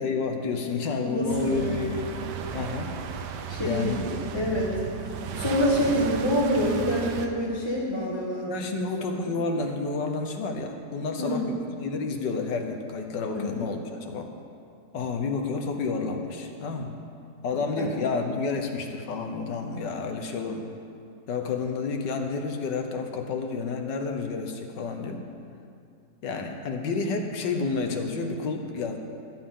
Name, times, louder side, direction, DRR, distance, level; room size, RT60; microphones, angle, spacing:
voice 1, 0.0-1.7 2.5-2.9 3.6-4.0 8.5-14.3 14.9-17.0 17.4-20.7 21.3-25.2 26.2-29.0, left 4 dB, 90° left, 4 dB, 1.7 m, -30 dB
voice 2, 1.0-2.2 3.5-4.8 5.3-8.8 11.2-11.5 13.3-13.6 17.8-18.0, equal, 20° left, -5 dB, 1.2 m, -27 dB
sound 1, 1.3-7.3, right 7 dB, 75° right, 1.3 m, -35 dB
16.5 x 10.5 x 3.8 m, 2.4 s
omnidirectional pair, 1.8 m